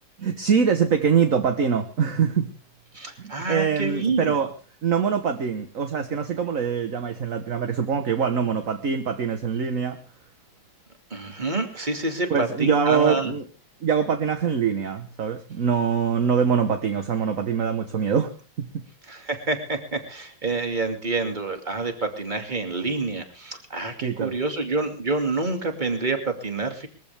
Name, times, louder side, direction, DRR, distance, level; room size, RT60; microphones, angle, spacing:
voice 1, 0.2-2.5 3.2-4.5 4.8-10.0 12.3-13.4 13.8-18.8 24.0-24.4, right 6 dB, 45° right, 7 dB, 1.5 m, -24 dB
voice 2, 2.9-4.4 11.1-13.3 19.1-26.9, right 3 dB, 20° right, 5 dB, 2.5 m, -27 dB
21.5 x 15.0 x 3.5 m, 0.36 s
omnidirectional pair, 2.2 m